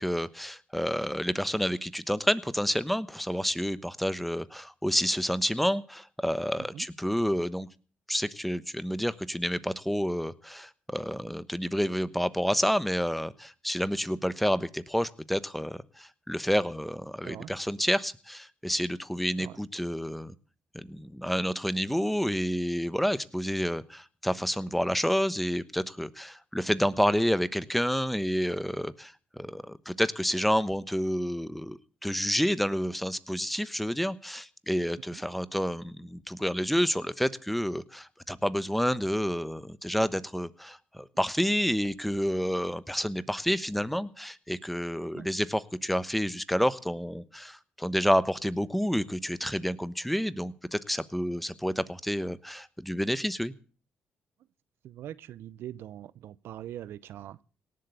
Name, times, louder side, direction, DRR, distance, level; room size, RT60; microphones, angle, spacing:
voice 1, 0.0-7.7 8.1-20.3 20.7-53.5, equal, ahead, 1.0 m, -29 dB
voice 2, 54.8-57.4, right 12 dB, 75° right, 0.6 m, -42 dB
18.0 x 7.7 x 8.2 m
cardioid pair, 80°, 4 cm